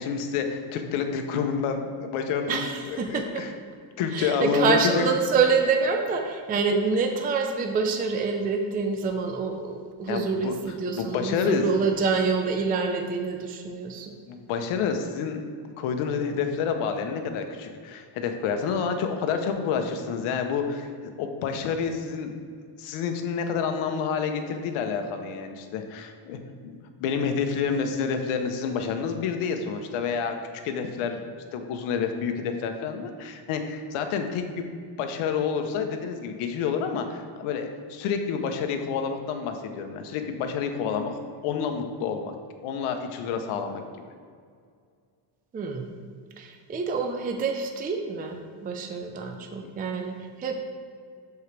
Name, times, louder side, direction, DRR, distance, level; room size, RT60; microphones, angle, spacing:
voice 1, 0.0-3.5 4.0-5.0 10.1-10.6 10.9-11.6 14.3-15.5 15.8-22.3 22.8-26.7 27.0-30.4 30.6-31.2 31.5-34.7 35.0-41.1 41.4-42.3 42.6-43.8 49.6-49.7, left 6 dB, 85° left, 6 dB, 1.0 m, -28 dB
voice 2, 2.5-3.4 4.1-14.2 45.5-45.9 46.4-50.5, right 4 dB, 20° right, 4 dB, 0.4 m, -27 dB
11.5 x 4.7 x 3.3 m, 2.2 s
cardioid pair, 145°, 48 cm